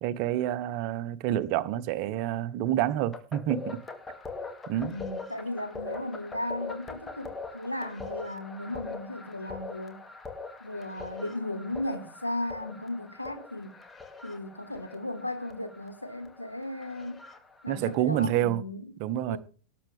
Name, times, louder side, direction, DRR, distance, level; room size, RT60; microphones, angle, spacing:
voice 1, 0.0-3.8 4.7-4.9 17.7-18.6 19.0-19.4, right 12 dB, 45° right, 0.9 m, -28 dB
sound 1, 3.1-17.9, left 4 dB, 15° left, 2.3 m, -42 dB
voice 2, 4.8-10.0 10.6-13.7 14.2-17.2 17.6-18.9 19.3-19.4, left 1 dB, 85° left, 2.1 m, -36 dB
19.0 x 7.8 x 3.5 m
figure-of-eight pair, 90°, 0 cm